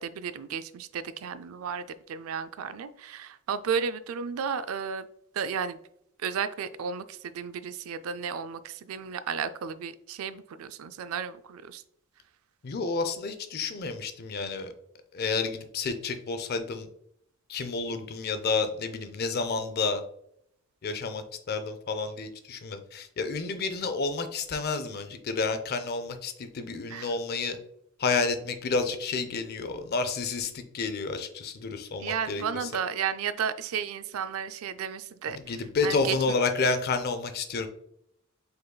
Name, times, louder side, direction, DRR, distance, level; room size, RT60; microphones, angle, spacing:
voice 1, 0.0-5.1 5.3-5.8 6.2-11.8 26.9-27.1 32.0-35.4 35.8-36.4, right 7 dB, 75° right, 13 dB, 0.3 m, -33 dB
voice 2, 12.6-14.7 15.1-16.9 17.5-20.0 20.8-27.6 28.0-32.7 35.3-37.7, left 4 dB, 50° left, 9 dB, 0.5 m, -30 dB
5.2 x 3.9 x 2.3 m, 0.72 s
head